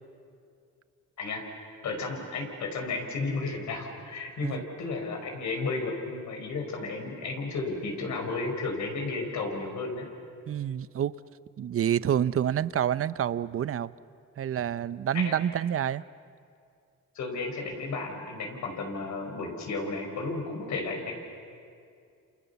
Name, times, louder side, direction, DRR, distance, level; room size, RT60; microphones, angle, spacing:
voice 1, 1.8-10.0 15.1-15.3 17.2-21.1, left 3 dB, 70° left, 3 dB, 5.5 m, -33 dB
voice 2, 10.5-11.2 11.6-13.9 14.4-16.0, right 9 dB, 50° right, 17 dB, 0.8 m, -28 dB
29.5 x 28.0 x 7.1 m, 2.4 s
cardioid pair, 90°, 30 cm